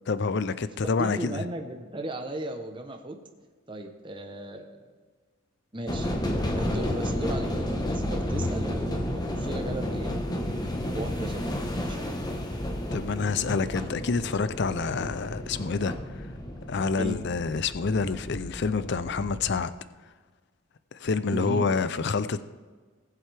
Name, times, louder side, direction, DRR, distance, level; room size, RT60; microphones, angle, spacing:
voice 1, 0.1-1.4 12.9-15.9 16.7-19.7 21.0-22.4, left 4 dB, 55° left, 14 dB, 0.5 m, -27 dB
voice 2, 1.0-3.2 3.7-4.9 5.7-6.1 6.5-10.1 10.9-12.1 17.0-17.2 21.3-21.7, right 1 dB, 25° right, 4 dB, 0.9 m, -36 dB
sound 1, 5.9-19.6, left 1 dB, 20° left, 1.1 m, -32 dB
19.5 x 7.8 x 3.4 m, 1.4 s
head